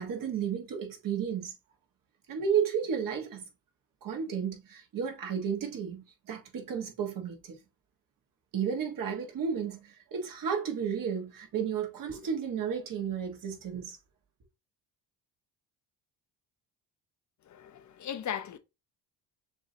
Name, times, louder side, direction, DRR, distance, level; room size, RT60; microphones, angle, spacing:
voice 1, 0.0-1.5 2.3-3.4 4.0-7.6 8.5-14.0, right 7 dB, 55° right, 1.5 m, -33 dB
voice 2, 17.5-18.6, left 9 dB, 45° left, 0.8 m, -37 dB
6.7 x 2.7 x 2.7 m
cardioid pair, 85°, 39 cm